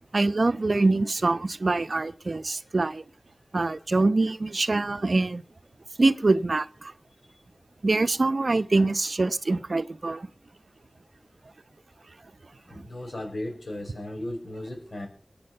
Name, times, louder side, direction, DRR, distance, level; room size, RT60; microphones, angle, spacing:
voice 1, 0.1-3.0 3.5-5.4 6.0-6.9 7.8-10.3, right 3 dB, 55° right, 0.8 m, -24 dB
voice 2, 12.7-15.1, left 1 dB, 60° left, 6.7 m, -36 dB
22.5 x 8.8 x 5.6 m
wide cardioid pair, 80°, 0 cm